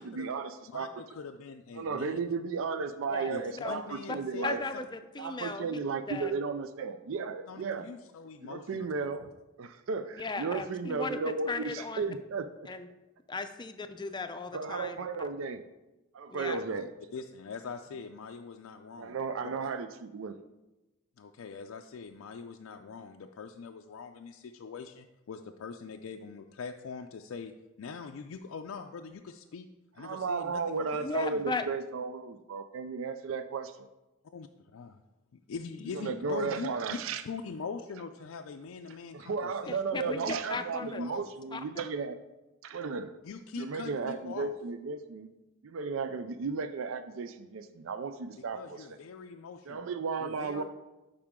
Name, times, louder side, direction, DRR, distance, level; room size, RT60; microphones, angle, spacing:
voice 1, 0.0-0.9 1.8-4.6 5.2-7.9 8.4-9.2 9.6-12.7 14.5-15.7 16.1-16.9 19.0-20.4 30.0-33.9 35.9-37.2 39.1-42.2 42.6-43.1 43.5-45.3 45.6-48.8 49.7-50.6, right 4 dB, 70° right, 11 dB, 0.4 m, -34 dB
voice 2, 0.7-2.2 3.3-4.6 7.5-8.9 17.1-19.2 19.4-19.7 21.2-27.5 27.8-29.7 29.9-31.3 34.3-35.0 35.3-40.4 40.8-41.3 43.2-44.5 48.3-49.9 50.2-50.6, left 5 dB, 85° left, 4 dB, 0.4 m, -43 dB
voice 3, 4.4-5.8 6.1-6.3 10.1-12.1 12.7-12.9 13.3-15.1 16.3-16.6 31.0-31.7 39.7-41.0 41.5-41.6, left 3 dB, 20° left, 8 dB, 0.5 m, -36 dB
12.0 x 4.9 x 3.6 m, 1.0 s
head